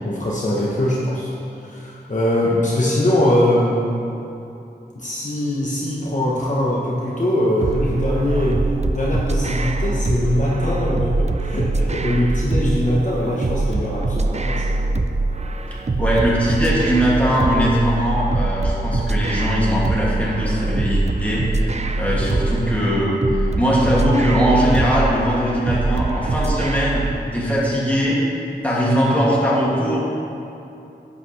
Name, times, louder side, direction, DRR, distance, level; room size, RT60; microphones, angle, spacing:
voice 1, 0.0-1.3 1.6-4.1 4.9-8.6 8.9-14.8 21.9-22.4, left 1 dB, 45° left, -5 dB, 1.1 m, -22 dB
sound 1, 7.6-27.2, right 2 dB, 40° right, 0.4 m, -23 dB
voice 2, 16.0-21.5 22.0-23.1 23.4-27.0 27.3-28.2 28.6-30.0, equal, 10° left, -7 dB, 2.4 m, -20 dB
11.0 x 8.4 x 3.3 m, 2.8 s
wide cardioid pair, 70°, 18 cm